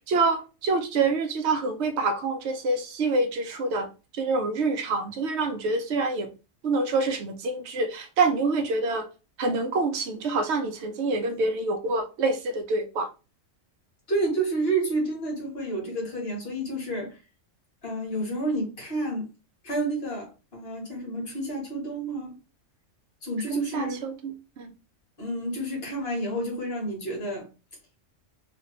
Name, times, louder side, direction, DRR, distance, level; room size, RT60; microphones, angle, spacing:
voice 1, 0.1-6.3 6.6-9.1 9.4-13.1 23.5-24.7, right 3 dB, 65° right, 0.8 m, -26 dB
voice 2, 14.1-17.2 17.8-19.3 19.6-22.4 23.2-24.1 25.2-27.5, right 2 dB, 50° left, 1.4 m, -30 dB
2.9 x 2.5 x 2.9 m
omnidirectional pair, 1.4 m